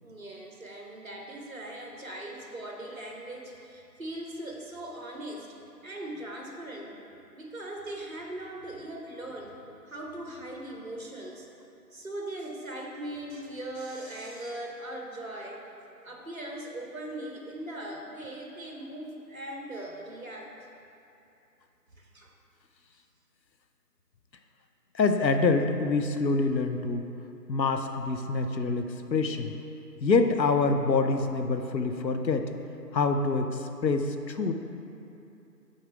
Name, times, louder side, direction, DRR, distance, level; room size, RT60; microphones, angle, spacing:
voice 1, 0.0-5.5 5.8-6.9 7.3-9.6 9.9-11.5 11.9-15.6 16.0-20.5 22.1-22.3, right 1 dB, 55° right, 0 dB, 1.1 m, -39 dB
voice 2, 24.9-27.0 27.5-29.5 30.0-32.5 32.9-34.5, left 3 dB, 90° left, 7 dB, 0.7 m, -26 dB
7.5 x 4.2 x 4.9 m, 2.8 s
figure-of-eight pair, 170°, 50 cm